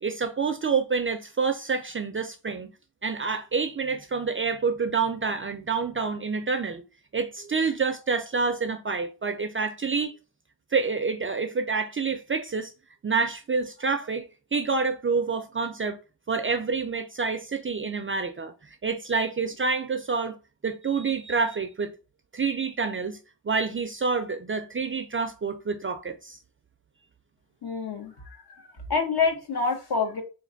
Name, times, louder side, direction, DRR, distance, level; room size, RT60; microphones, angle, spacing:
voice 1, 0.0-2.7 3.0-6.8 7.1-10.1 10.7-12.7 13.0-16.0 16.3-20.4 20.6-21.9 22.3-23.2 23.4-26.4, right 4 dB, 30° right, 0.4 m, -28 dB
voice 2, 27.6-28.1 28.9-30.2, left 4 dB, 60° left, 1.1 m, -26 dB
3.2 x 3.2 x 3.9 m
wide cardioid pair, 140°, 43 cm